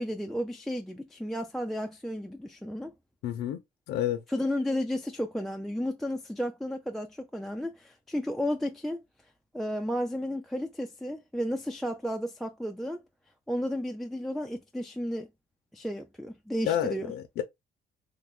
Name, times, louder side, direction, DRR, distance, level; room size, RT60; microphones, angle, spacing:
voice 1, 0.0-2.9 4.3-9.0 9.5-13.0 13.5-15.3 15.7-17.1, equal, ahead, 0.3 m, -33 dB
voice 2, 3.2-3.6 3.9-4.2 16.6-17.4, left 11 dB, 75° left, 0.5 m, -29 dB
3.2 x 2.3 x 3.5 m
cardioid pair, 110°, 17 cm